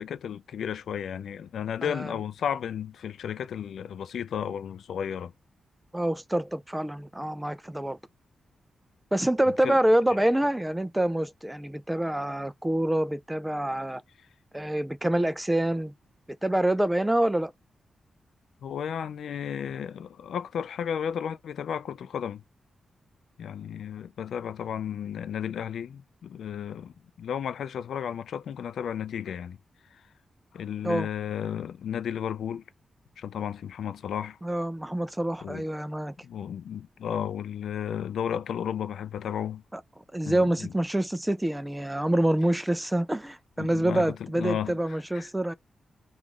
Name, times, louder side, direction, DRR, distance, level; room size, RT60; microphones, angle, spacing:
voice 1, 0.0-5.3 9.6-9.8 18.6-22.4 23.4-29.6 30.5-32.6 33.2-34.4 35.4-35.6 36.2-39.6 40.3-40.7 43.6-44.1 44.3-45.3, left 8 dB, 80° left, 0.3 m, -33 dB
voice 2, 1.8-2.1 5.9-8.0 9.1-14.0 14.5-15.9 16.4-17.5 30.8-31.1 34.4-36.1 39.7-39.8 40.1-45.5, right 1 dB, 5° right, 0.3 m, -26 dB
3.0 x 2.4 x 3.6 m
wide cardioid pair, 165°, 0 cm